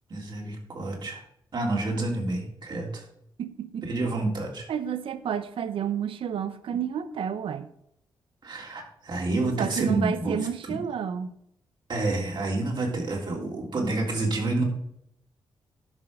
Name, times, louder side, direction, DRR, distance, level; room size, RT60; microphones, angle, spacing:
voice 1, 0.1-1.2 1.5-3.0 3.8-4.7 8.4-10.4 10.7-10.8 11.9-14.6, right 2 dB, 55° right, 0 dB, 3.2 m, -29 dB
voice 2, 3.4-3.8 4.7-7.7 9.6-11.3, right 8 dB, 75° right, 13 dB, 0.7 m, -30 dB
12.5 x 5.6 x 5.4 m, 0.75 s
cardioid pair, 70°, 9 cm